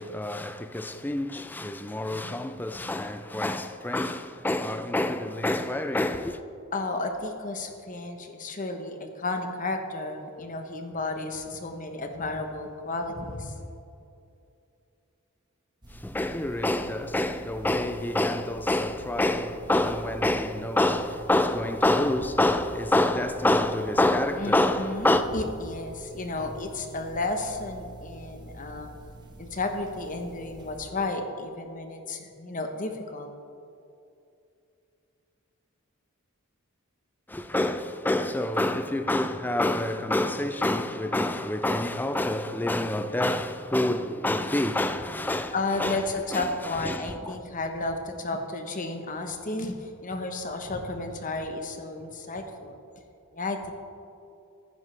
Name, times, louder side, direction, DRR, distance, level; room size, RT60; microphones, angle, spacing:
voice 1, 0.0-6.4 15.9-25.2 37.3-45.5 45.8-46.0 46.3-46.5 46.8-47.3, left 1 dB, 10° left, 0.4 m, -27 dB
voice 2, 6.7-13.6 24.4-28.9 29.4-33.3 45.5-52.8 53.3-53.7, left 2 dB, 40° left, 1.0 m, -32 dB
sound 1, 15.8-30.9, right 1 dB, 20° right, 0.9 m, -46 dB
15.0 x 10.5 x 3.3 m
head